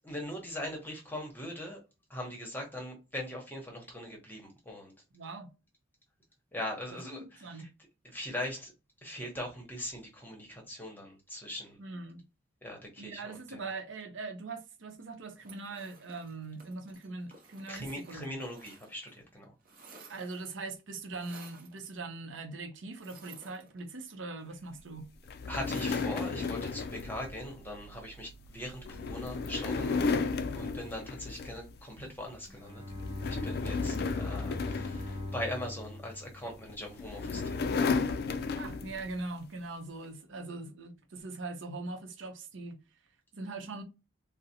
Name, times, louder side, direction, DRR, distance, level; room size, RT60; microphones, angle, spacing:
voice 1, 0.0-1.8 2.1-4.9 6.5-7.7 8.1-8.7 9.0-11.8 12.6-13.6 17.7-19.5 25.5-30.1 30.5-32.8 33.3-37.8, left 1 dB, 10° left, 0.9 m, -41 dB
voice 2, 5.1-5.5 7.1-7.7 11.8-12.3 13.0-18.4 20.1-25.1 38.5-42.8 43.3-43.8, right 3 dB, 80° right, 0.7 m, -41 dB
sound 1, 15.4-19.2 19.4-20.6 21.1-21.8 22.9-24.1 25.5-26.3, right 4 dB, 45° right, 0.7 m, -55 dB
sound 2, 25.3-31.8 32.2-32.5 32.9-35.9 36.7-39.1, left 4 dB, 55° left, 0.3 m, -34 dB
Bowed string instrument, 32.2-37.4, left 1 dB, 20° right, 1.1 m, -43 dB
3.9 x 2.0 x 2.7 m
head